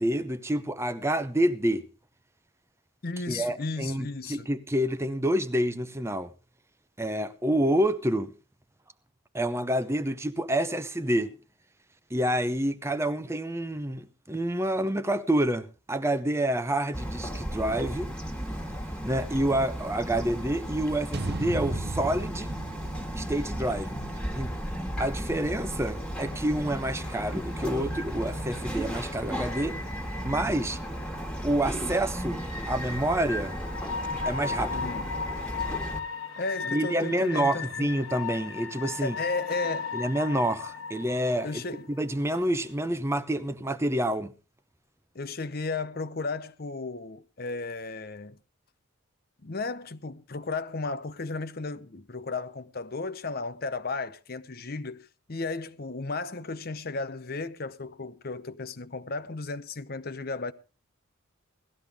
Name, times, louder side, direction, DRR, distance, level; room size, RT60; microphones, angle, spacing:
voice 1, 0.0-1.9 3.3-6.3 7.0-8.3 9.3-11.3 12.1-18.1 19.1-22.6 23.1-23.9 24.3-24.5 25.0-29.8 30.2-30.8 31.4-33.6 34.3-34.9 36.7-39.2 39.9-41.6 41.9-44.3, right 1 dB, 10° right, 0.7 m, -28 dB
voice 2, 3.0-4.5 34.7-35.1 36.4-37.9 39.0-39.9 41.4-41.9 45.1-48.4 49.4-60.5, left 3 dB, 45° left, 0.8 m, -34 dB
Bird vocalization bird call bird song, 16.9-36.0, equal, 5° left, 1.8 m, -35 dB
sound 1, 21.1-25.4, right 2 dB, 50° right, 0.8 m, -37 dB
sound 2, 26.9-42.8, left 5 dB, 85° left, 2.0 m, -38 dB
18.0 x 13.5 x 3.6 m
head